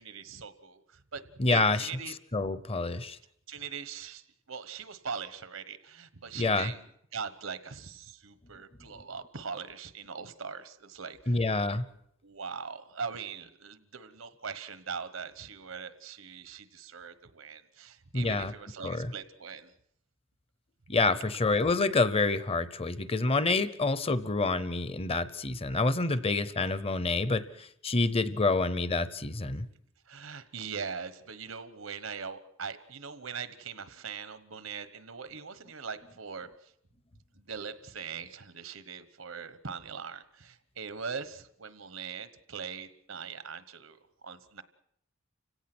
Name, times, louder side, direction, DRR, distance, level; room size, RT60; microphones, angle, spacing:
voice 1, 0.0-1.2 1.5-2.2 3.5-11.4 12.2-19.7 26.1-26.2 30.1-36.7 37.3-44.6, right 6 dB, 85° right, 13 dB, 1.2 m, -41 dB
voice 2, 1.4-1.9 2.3-3.2 6.3-6.7 11.3-11.9 18.1-18.5 18.8-19.1 20.9-29.7, left 3 dB, 30° left, 15 dB, 0.8 m, -27 dB
30.0 x 17.0 x 6.1 m, 0.73 s
head